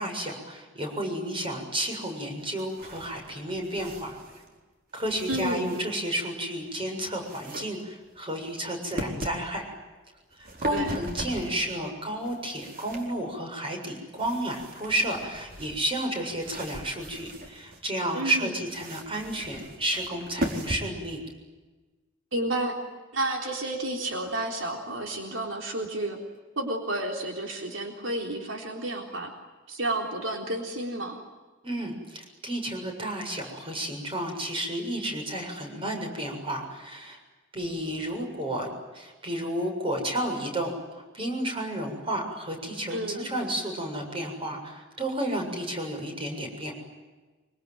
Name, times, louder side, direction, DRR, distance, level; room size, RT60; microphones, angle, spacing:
voice 1, 0.0-4.2 4.9-9.6 10.4-21.2 31.6-37.2 37.5-46.7, right 1 dB, 30° right, 3 dB, 7.2 m, -32 dB
sound 1, 2.4-4.6 4.9-6.1 6.6-7.6 8.0-8.5 9.0-9.4 10.2-11.7 12.2-13.4 14.1-17.8 18.7-20.8, equal, 50° right, 4.6 m, -39 dB
voice 2, 5.3-5.8 10.7-10.9 18.1-18.5 22.3-22.8 23.1-26.2 26.6-29.3 29.7-31.2 42.9-43.3, right 1 dB, 75° right, 2 dB, 3.8 m, -31 dB
25.5 x 24.5 x 9.3 m, 1.2 s
head